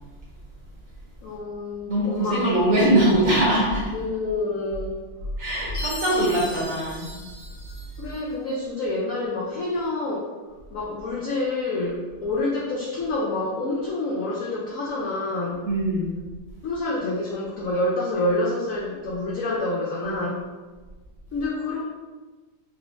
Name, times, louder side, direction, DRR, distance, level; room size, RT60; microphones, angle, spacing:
voice 1, 1.2-2.5 3.9-5.0 8.0-10.3 10.7-15.6 16.6-20.4 21.3-21.8, left 2 dB, 85° left, -4 dB, 0.7 m, -27 dB
voice 2, 1.9-3.9 5.4-7.1 15.6-16.1 20.0-20.3, right 1 dB, 55° right, -5 dB, 1.0 m, -22 dB
Chime, 5.7-8.2, left 1 dB, 35° left, 1.0 m, -38 dB
4.1 x 3.1 x 2.6 m, 1.3 s
omnidirectional pair, 2.1 m